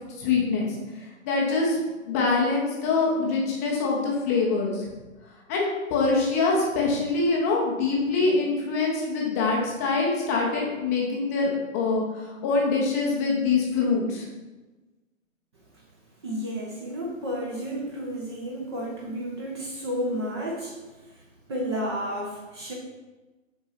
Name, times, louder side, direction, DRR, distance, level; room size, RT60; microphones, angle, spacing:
voice 1, 0.2-1.8 2.1-4.9 5.5-14.2, left 4 dB, 10° left, -2 dB, 0.7 m, -24 dB
voice 2, 16.2-21.2 21.5-22.7, equal, 20° right, -2 dB, 0.8 m, -32 dB
6.4 x 4.5 x 5.6 m, 1.2 s
figure-of-eight pair, 130°, 40 cm